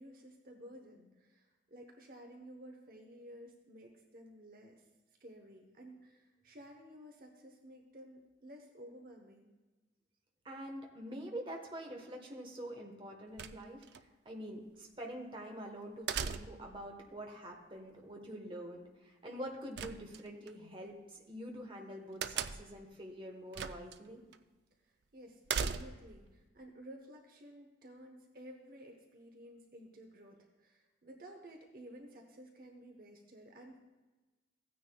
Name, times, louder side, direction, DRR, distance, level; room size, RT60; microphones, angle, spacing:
voice 1, 0.0-4.8 5.2-9.5 25.1-33.8, equal, 50° right, 2 dB, 1.0 m, -53 dB
voice 2, 10.4-24.2, equal, 30° right, 1 dB, 1.2 m, -46 dB
sound 1, 13.4-14.0 16.1-16.8 19.8-20.5 22.2-22.8 23.5-24.0 24.3-24.4 25.5-26.2, right 6 dB, 70° right, 0.4 m, -38 dB
15.5 x 9.5 x 2.3 m, 1.2 s
head